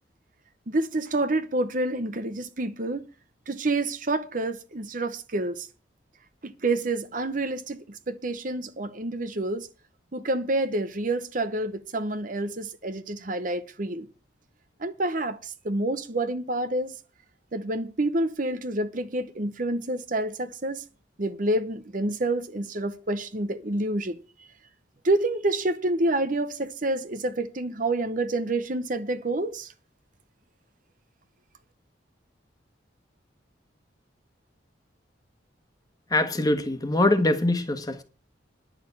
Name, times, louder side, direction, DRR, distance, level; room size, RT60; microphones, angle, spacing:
voice 1, 0.7-3.1 3.5-5.7 6.4-9.7 10.1-14.1 14.8-16.9 17.5-20.8 21.2-24.2 25.0-29.7, right 2 dB, 45° right, 0.9 m, -28 dB
voice 2, 36.1-38.0, left 2 dB, 20° left, 1.4 m, -23 dB
10.5 x 6.7 x 8.3 m
head